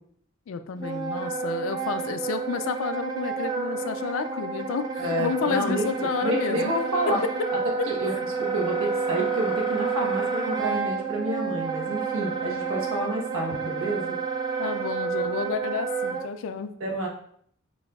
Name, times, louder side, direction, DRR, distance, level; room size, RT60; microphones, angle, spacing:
voice 1, 0.5-6.7 7.8-7.9 14.6-16.7, left 6 dB, 85° left, 10 dB, 0.4 m, -30 dB
Wind instrument woodwind instrument, 0.8-16.3, right 5 dB, 20° right, 0.4 m, -30 dB
voice 2, 5.0-7.2 7.9-8.1 8.4-14.2 16.8-17.1, right 1 dB, 85° right, -1 dB, 1.1 m, -29 dB
6.2 x 2.7 x 2.3 m, 0.64 s
head